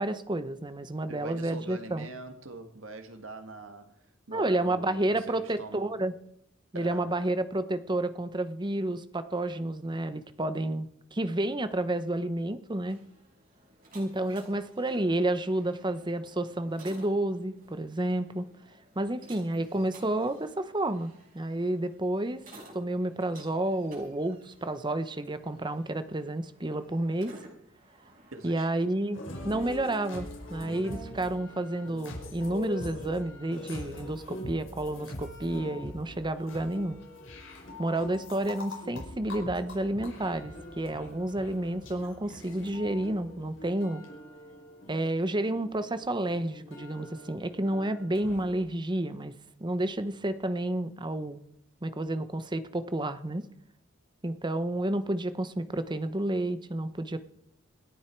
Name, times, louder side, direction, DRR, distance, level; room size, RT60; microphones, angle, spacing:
voice 1, 0.0-2.1 4.3-6.1 6.7-13.0 13.9-18.5 18.9-22.4 22.7-27.3 28.4-29.2 29.4-37.0 37.8-44.0 44.9-49.3 49.6-51.4 51.8-53.4 54.2-57.2, right 1 dB, 25° right, 0.9 m, -30 dB
voice 2, 1.1-6.0 6.7-7.1 28.3-28.8, right 2 dB, 80° right, 1.8 m, -44 dB
sound 1, 12.7-31.2, right 1 dB, 45° right, 5.7 m, -55 dB
sound 2, 29.1-48.6, left 1 dB, 65° left, 5.1 m, -43 dB
27.0 x 9.3 x 4.6 m
head